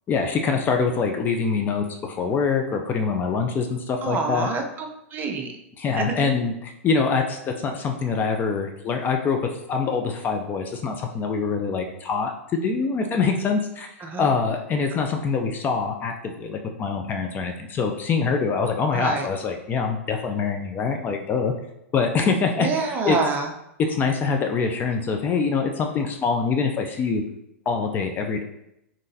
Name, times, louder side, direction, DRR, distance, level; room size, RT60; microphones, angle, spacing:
voice 1, 0.1-4.5 5.8-9.4 9.7-13.9 14.2-16.1 16.4-21.5 21.9-22.7 23.1-23.2 23.9-27.2 27.7-28.4, left 5 dB, 25° left, 3 dB, 0.4 m, -24 dB
voice 2, 4.0-5.5 6.0-6.3 14.0-14.3 14.9-15.0 18.9-19.3 22.6-23.5, right 4 dB, 25° right, 3 dB, 0.6 m, -27 dB
3.7 x 3.7 x 2.7 m, 0.82 s
hypercardioid pair, 105°, 8 cm